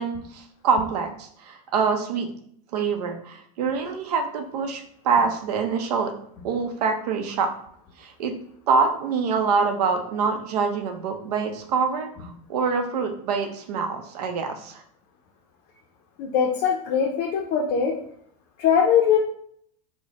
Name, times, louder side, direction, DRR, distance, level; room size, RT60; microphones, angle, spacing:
voice 1, 0.0-2.3 2.7-6.1 6.4-7.5 8.0-8.3 8.7-14.8, right 5 dB, 90° right, 6 dB, 0.6 m, -25 dB
voice 2, 16.2-17.9 18.6-19.2, left 7 dB, 55° left, 0 dB, 0.5 m, -21 dB
3.2 x 2.1 x 3.5 m, 0.65 s
supercardioid pair, 115°, 20 cm